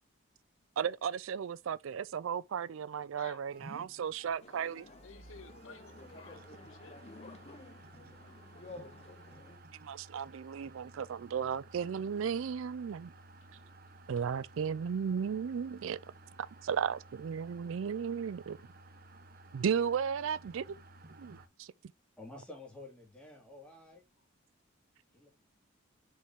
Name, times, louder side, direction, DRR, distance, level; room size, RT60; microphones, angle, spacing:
voice 1, 0.8-4.8 9.8-13.1 14.1-16.0 16.4-18.6 19.5-20.7 21.2-21.7, right 7 dB, 70° right, 0.4 m, -35 dB
voice 2, 3.1-3.4 4.4-7.0, left 5 dB, 70° left, 0.7 m, -54 dB
sound 1, 3.5-21.5, right 2 dB, 45° right, 0.9 m, -55 dB
sound 2, 4.4-9.6, left 2 dB, 30° left, 0.9 m, -52 dB
voice 3, 22.2-24.0 25.1-25.3, left 2 dB, 5° left, 2.9 m, -50 dB
6.4 x 5.4 x 3.6 m
head